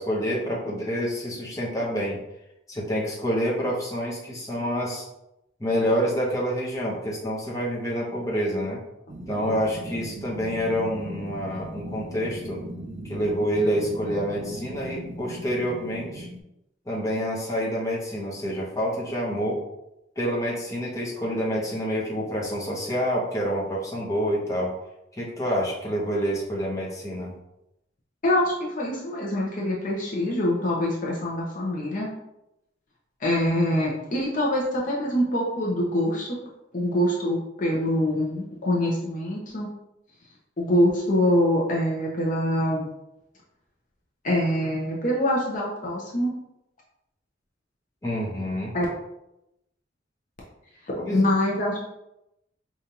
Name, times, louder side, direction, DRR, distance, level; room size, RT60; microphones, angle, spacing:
voice 1, 0.0-2.2 2.7-5.1 5.6-8.8 9.3-12.6 13.0-16.3 16.9-19.6 20.2-24.7 25.1-27.3 48.0-48.7 51.0-51.2, equal, 15° left, -5 dB, 0.9 m, -27 dB
sound 1, 9.1-16.4, right 1 dB, 40° right, 0.4 m, -38 dB
voice 2, 28.2-32.1 33.2-36.4 36.7-39.7 40.6-42.9 44.2-46.3 48.7-48.8 51.1-51.8, left 1 dB, 45° left, -4 dB, 0.7 m, -24 dB
5.1 x 2.5 x 2.9 m, 0.87 s
head